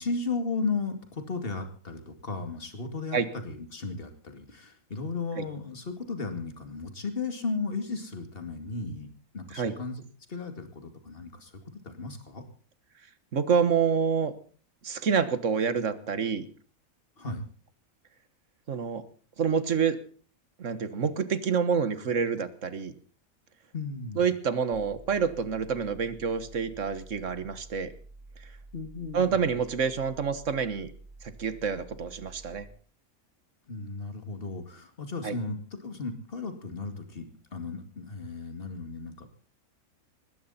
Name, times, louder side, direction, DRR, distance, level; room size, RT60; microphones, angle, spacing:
voice 1, 0.0-9.1 9.3-10.0 10.3-11.5 11.8-12.4 17.2-17.5 23.7-24.3 28.7-29.5 33.7-39.3, left 4 dB, 40° left, 6 dB, 2.5 m, -35 dB
voice 2, 13.3-14.3 14.8-16.5 18.7-19.0 19.4-20.0 20.6-22.9 24.1-27.9 29.1-30.9 31.2-32.7 35.2-35.4, right 6 dB, 60° right, 13 dB, 1.6 m, -27 dB
sound 1, 24.7-32.7, right 2 dB, 15° right, 1.1 m, -50 dB
20.0 x 16.0 x 4.2 m, 0.42 s
omnidirectional pair, 1.5 m